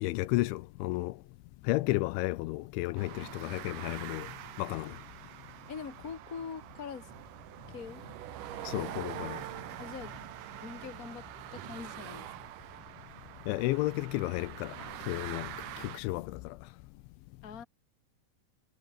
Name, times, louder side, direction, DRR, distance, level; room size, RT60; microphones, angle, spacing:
voice 1, 0.0-1.1 1.7-4.3 4.6-4.9 8.7-9.4 13.5-14.7 15.1-16.6, left 19 dB, 85° left, 3.0 m, -32 dB
sound 1, 3.0-16.0, right 12 dB, 70° right, 2.0 m, -44 dB
voice 2, 5.7-7.1 7.7-8.0 9.8-10.1 10.6-11.2 11.5-12.3 17.4-17.6, left 6 dB, 30° left, 1.7 m, -43 dB
omnidirectional pair, 5.6 m